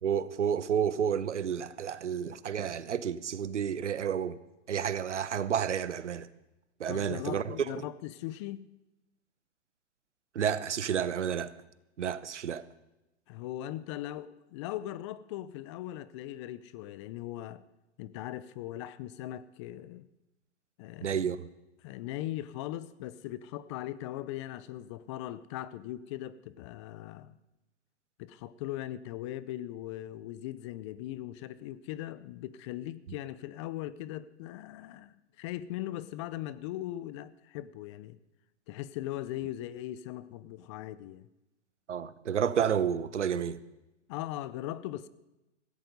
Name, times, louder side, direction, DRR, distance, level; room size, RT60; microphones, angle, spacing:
voice 1, 0.0-4.4 4.7-6.3 6.8-7.8 10.3-11.5 12.0-12.6 21.0-21.5 41.9-43.6, right 8 dB, 85° right, 1.0 m, -30 dB
voice 2, 6.9-8.7 13.3-17.6 18.0-20.1 20.8-21.2 21.8-27.3 28.2-38.2 38.7-41.3 44.1-45.1, left 14 dB, 25° left, 0.5 m, -39 dB
16.0 x 15.5 x 5.2 m
hypercardioid pair, 130°, 35 cm